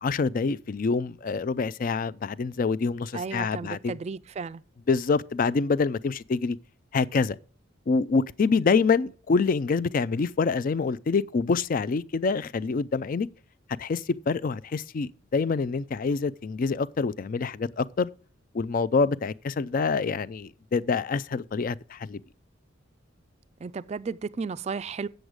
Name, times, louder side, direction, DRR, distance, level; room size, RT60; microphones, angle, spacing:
voice 1, 0.0-4.0 4.9-6.6 6.9-7.4 7.9-13.3 13.8-18.1 18.5-22.2, left 4 dB, 45° left, 0.4 m, -26 dB
voice 2, 3.1-4.6 23.6-25.1, right 5 dB, 35° right, 0.3 m, -34 dB
8.0 x 7.8 x 4.8 m
head